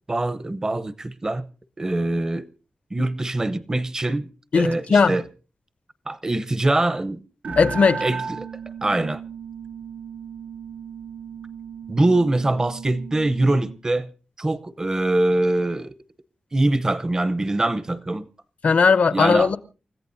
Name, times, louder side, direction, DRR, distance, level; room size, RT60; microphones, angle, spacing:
voice 1, 0.1-1.5 1.8-2.5 2.9-4.3 4.5-5.2 6.1-7.2 7.4-7.6 8.0-8.5 8.8-9.2 11.9-14.1 14.4-15.9 16.5-18.3 19.1-19.5, right 2 dB, 25° right, 0.7 m, -23 dB
voice 2, 4.5-5.1 7.6-8.0 18.6-19.6, left 5 dB, 65° left, 0.8 m, -17 dB
sound 1, 7.4-13.8, right 6 dB, 75° right, 0.9 m, -35 dB
29.0 x 14.5 x 2.6 m
wide cardioid pair, 135°, 2 cm